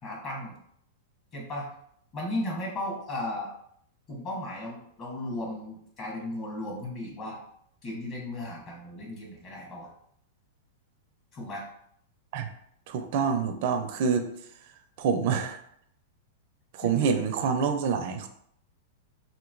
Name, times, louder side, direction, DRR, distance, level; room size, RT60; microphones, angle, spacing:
voice 1, 0.0-0.6 1.3-1.7 2.1-3.5 4.1-7.4 7.8-9.9 11.3-11.6 16.8-17.1, left 1 dB, 35° left, -2 dB, 1.0 m, -35 dB
voice 2, 12.9-14.3 15.0-15.6 16.8-18.3, right 6 dB, 55° right, 8 dB, 0.4 m, -26 dB
3.0 x 2.9 x 2.5 m, 0.69 s
hypercardioid pair, 140°, 0 cm